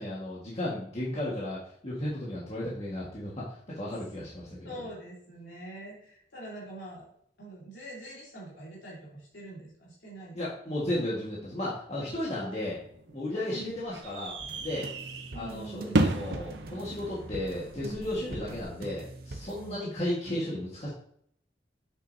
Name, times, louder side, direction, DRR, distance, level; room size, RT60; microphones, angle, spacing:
voice 1, 0.0-4.7 10.3-12.8 13.1-14.9 15.3-20.9, left 1 dB, 35° left, -7 dB, 1.6 m, -34 dB
voice 2, 4.6-7.1 7.4-10.4 12.1-12.6 13.3-13.7 15.3-16.1 19.5-20.0, right 2 dB, 85° left, -6 dB, 3.0 m, -44 dB
sound 1, 12.6-18.6, right 2 dB, 80° right, 0.9 m, -34 dB
sound 2, 14.4-19.8, right 2 dB, 55° right, 0.8 m, -44 dB
8.2 x 6.4 x 2.7 m, 0.68 s
head